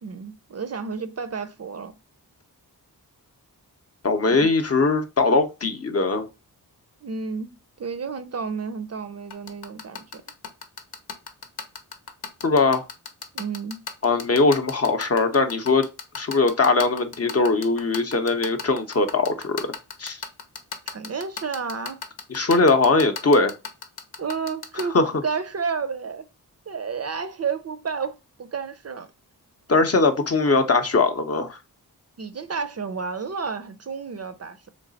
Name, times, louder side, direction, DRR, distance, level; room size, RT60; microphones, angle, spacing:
voice 1, 0.0-1.9 4.2-4.5 7.0-10.2 13.3-13.8 20.9-22.0 24.2-26.3 26.7-29.1 32.2-34.7, right 5 dB, 45° right, 0.4 m, -31 dB
voice 2, 4.0-6.3 12.4-12.8 14.0-15.9 16.2-19.7 20.0-20.2 22.3-23.5 24.9-25.0 29.7-31.6, left 3 dB, 40° left, 0.6 m, -20 dB
sound 1, 9.3-24.8, left 6 dB, 85° left, 0.9 m, -33 dB
3.2 x 3.1 x 3.9 m
wide cardioid pair, 100°, 37 cm